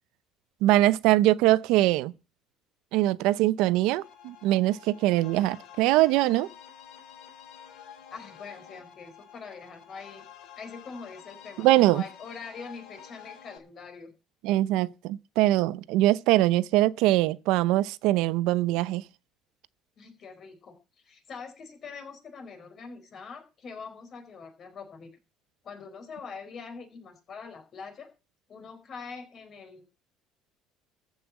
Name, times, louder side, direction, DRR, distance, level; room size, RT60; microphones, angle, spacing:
voice 1, 0.6-2.1 2.9-6.5 11.6-12.0 14.4-19.0, right 16 dB, 70° right, 0.7 m, -22 dB
sound 1, 4.0-13.6, left 9 dB, 60° left, 3.0 m, -49 dB
voice 2, 8.1-10.3 10.6-14.1 20.0-20.8 21.0-25.1 25.6-28.1 28.5-29.9, left 5 dB, 35° left, 4.6 m, -43 dB
14.5 x 5.8 x 8.7 m
cardioid pair, 145°, 0 cm